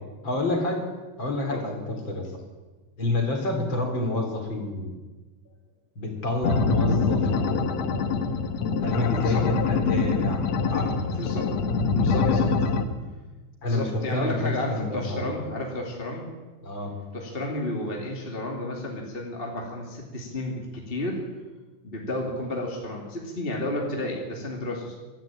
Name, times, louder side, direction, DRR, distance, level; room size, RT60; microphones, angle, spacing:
voice 1, 0.2-0.8 1.2-2.3 3.0-4.9 6.0-7.8 8.8-11.0 12.2-12.4 13.6-15.3 16.6-16.9, left 2 dB, 35° left, 3 dB, 4.3 m, -29 dB
sound 1, 6.4-12.8, left 4 dB, 60° left, 2.3 m, -24 dB
voice 2, 11.2-11.6 11.9-12.5 13.7-16.3 17.1-21.2 21.8-25.0, left 1 dB, 20° left, -1 dB, 2.6 m, -32 dB
23.5 x 13.0 x 9.0 m, 1.3 s
omnidirectional pair, 3.6 m